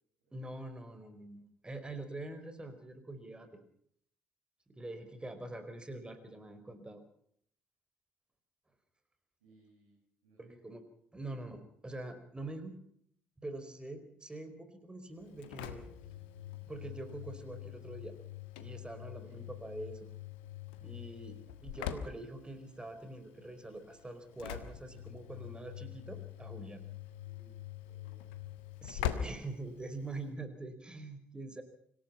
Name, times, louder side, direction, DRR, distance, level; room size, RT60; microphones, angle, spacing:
voice 1, 0.3-3.6 4.7-7.0 10.4-10.8 11.1-12.8 13.4-15.9 16.7-18.1 18.6-20.1 20.8-26.8 28.8-31.6, right 2 dB, 15° right, 8 dB, 4.8 m, -45 dB
voice 2, 9.4-10.0 10.2-10.6 19.2-19.3 27.2-27.5 27.8-28.6, right 3 dB, 75° right, -4 dB, 7.0 m, -65 dB
Engine / Slam, 15.2-30.3, left 11 dB, 70° left, 1.4 m, -44 dB
26.0 x 17.5 x 5.7 m, 0.65 s
figure-of-eight pair, 45°, 6 cm